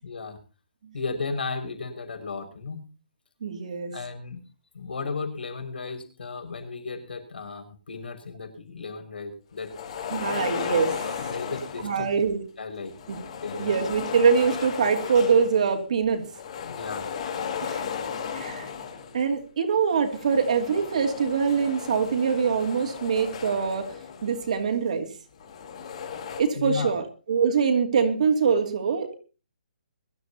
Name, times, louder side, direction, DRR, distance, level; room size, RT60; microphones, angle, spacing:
voice 1, 0.0-0.4 0.9-2.8 3.9-4.4 4.7-9.7 11.2-12.1 12.6-12.9 13.4-13.7 16.6-17.1 26.5-26.9, left 4 dB, 80° left, 5 dB, 5.8 m, -34 dB
voice 2, 3.4-3.9 10.1-11.1 11.8-12.4 13.1-13.2 13.6-16.2 17.6-17.8 18.3-18.7 19.1-23.9 24.2-25.1 26.4-29.1, right 6 dB, 45° right, 4 dB, 2.7 m, -24 dB
sound 1, 9.6-12.2 12.8-15.7 16.1-19.3 19.9-24.7 25.3-26.4, left 7 dB, 35° left, 3.6 m, -35 dB
23.0 x 13.5 x 2.9 m, 0.33 s
hypercardioid pair, 175°, 5 cm